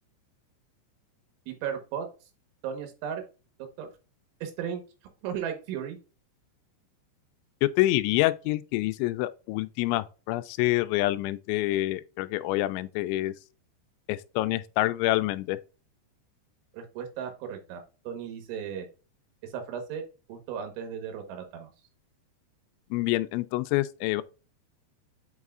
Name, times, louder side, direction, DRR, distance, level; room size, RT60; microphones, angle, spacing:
voice 1, 1.5-2.1 2.6-3.2 3.6-3.9 4.4-4.8 5.2-6.0 16.7-18.9 19.4-20.0 20.3-21.7, right 8 dB, 90° right, 3.7 m, -35 dB
voice 2, 7.6-13.3 14.1-15.6 22.9-24.2, left 17 dB, 90° left, 2.9 m, -27 dB
8.2 x 4.8 x 2.4 m
omnidirectional pair, 5.3 m